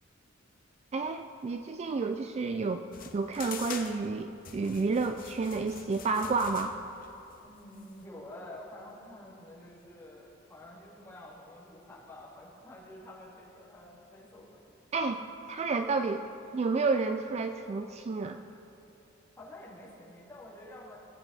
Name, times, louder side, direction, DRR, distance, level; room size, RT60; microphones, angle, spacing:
voice 1, 0.9-2.8 3.1-6.8 14.9-15.2 15.5-16.3 16.5-18.4, right 4 dB, 30° right, 7 dB, 0.3 m, -30 dB
sound 1, 2.9-8.0, left 6 dB, 45° left, 0.9 m, -45 dB
voice 2, 7.4-14.8 19.3-21.0, left 1 dB, 15° left, -7 dB, 2.7 m, -49 dB
17.5 x 8.1 x 4.2 m, 2.9 s
head